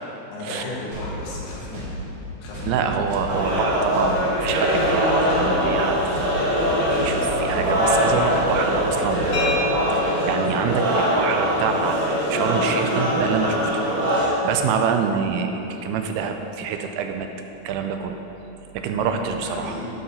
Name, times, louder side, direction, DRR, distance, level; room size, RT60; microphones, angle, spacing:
voice 1, 0.3-1.9 2.4-3.0 18.9-19.8, left 1 dB, 80° left, -5 dB, 3.6 m, -34 dB
sound 1, 0.9-9.7, left 1 dB, 55° right, 3.0 m, -34 dB
voice 2, 2.7-6.3 7.0-9.5 9.8-13.7 14.1-17.3 17.6-18.2 18.7-19.8, right 6 dB, 85° right, 5 dB, 2.5 m, -26 dB
sound 2, 3.3-14.3, equal, 35° right, 2.0 m, -22 dB
sound 3, 9.3-16.9, left 3 dB, 55° left, 1.7 m, -36 dB
11.5 x 4.7 x 5.5 m, 2.9 s
omnidirectional pair, 4.6 m